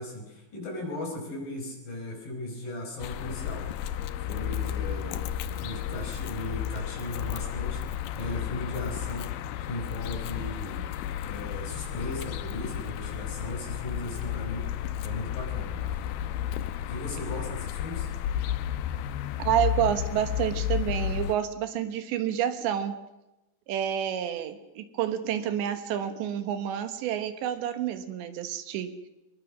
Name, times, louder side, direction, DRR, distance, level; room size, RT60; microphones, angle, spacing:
voice 1, 0.0-3.7 4.2-5.2 5.6-10.9 11.2-14.7 15.0-15.8 16.9-18.1, left 1 dB, 50° left, 2 dB, 6.6 m, -37 dB
sound 1, 3.0-21.4, left 10 dB, 75° left, 2.2 m, -32 dB
voice 2, 19.4-23.0 23.7-28.9, right 10 dB, 75° right, 9 dB, 3.5 m, -29 dB
24.5 x 21.0 x 6.2 m, 0.98 s
omnidirectional pair, 5.2 m